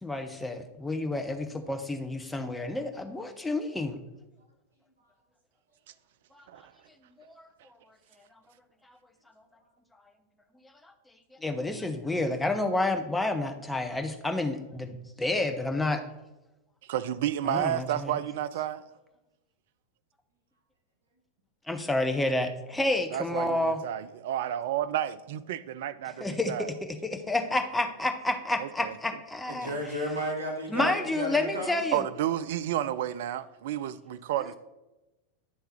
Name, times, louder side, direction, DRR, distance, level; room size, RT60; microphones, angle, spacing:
voice 1, 0.0-4.0 6.3-6.4 7.2-7.5 10.8-10.9 11.4-16.0 17.5-18.1 21.7-23.8 26.2-26.5 26.8-29.8 30.7-32.0, left 2 dB, 5° left, 0.7 m, -29 dB
voice 2, 16.9-18.8 23.1-26.7 28.6-28.9 31.9-34.6, right 11 dB, 55° right, 0.3 m, -31 dB
voice 3, 29.5-31.8, equal, 75° right, 1.1 m, -33 dB
9.2 x 3.4 x 4.3 m
figure-of-eight pair, 90°, 0 cm